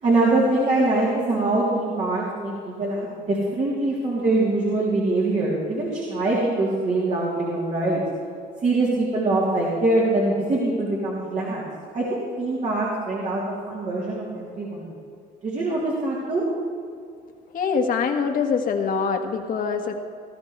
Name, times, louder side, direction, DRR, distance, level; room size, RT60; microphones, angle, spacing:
voice 1, 0.0-8.0 8.6-11.6 11.9-14.9 15.4-16.4, right 2 dB, 45° right, -5 dB, 3.5 m, -23 dB
voice 2, 17.5-19.9, left 5 dB, 55° left, 4 dB, 1.7 m, -24 dB
19.5 x 13.5 x 3.4 m, 2.4 s
cardioid pair, 110°, 17 cm